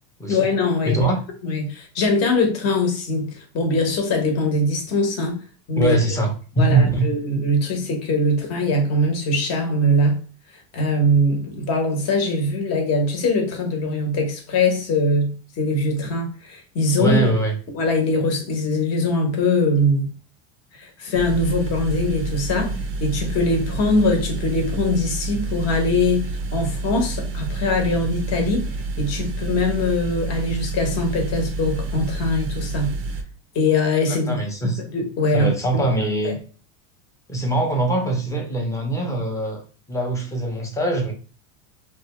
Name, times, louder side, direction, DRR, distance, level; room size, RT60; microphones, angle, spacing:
voice 1, 0.3-1.1 1.4-5.4 5.7-5.9 6.6-10.2 10.7-17.2 17.7-20.1 20.7-28.7 29.0-33.0 33.5-34.4 34.9-35.8 36.2-36.3, left 2 dB, 35° left, 1.0 m, -22 dB
voice 2, 0.8-1.1 5.8-7.1 17.0-17.5 34.1-34.8 35.3-36.4 37.3-39.6 39.9-41.1, right 2 dB, 5° left, 0.6 m, -22 dB
sound 1, 21.1-33.2, right 3 dB, 30° right, 0.5 m, -29 dB
2.6 x 2.3 x 3.0 m
supercardioid pair, 135°, 43 cm